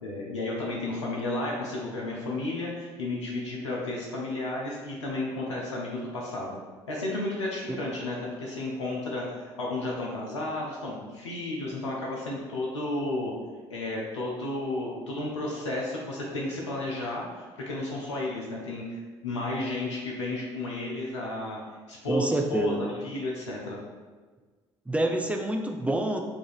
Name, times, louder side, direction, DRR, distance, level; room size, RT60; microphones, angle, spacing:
voice 1, 0.0-6.5 6.9-13.3 13.7-21.6 21.9-23.8, left 2 dB, 85° left, -3 dB, 0.5 m, -32 dB
voice 2, 22.1-22.9 24.9-26.2, right 1 dB, 10° right, 2 dB, 0.4 m, -27 dB
4.8 x 2.4 x 2.3 m, 1.4 s
figure-of-eight pair, 55°, 15 cm